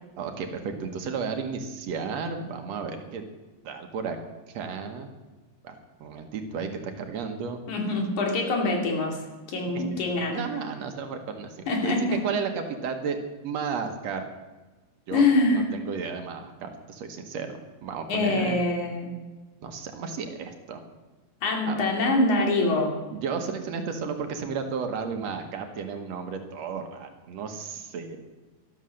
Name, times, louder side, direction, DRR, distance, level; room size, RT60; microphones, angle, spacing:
voice 1, 0.2-3.2 3.6-4.2 4.5-5.1 5.6-7.6 9.7-10.0 10.3-11.9 12.2-13.2 13.4-14.3 15.1-15.2 15.5-18.7 19.6-20.8 21.7-21.8 23.1-28.2, right 5 dB, 65° right, 6 dB, 2.3 m, -33 dB
voice 2, 7.7-9.2 9.5-10.4 11.7-12.2 15.1-15.7 18.1-19.1 21.4-22.9, left 2 dB, 80° left, 1 dB, 3.9 m, -24 dB
13.0 x 12.5 x 6.4 m, 1.2 s
omnidirectional pair, 3.4 m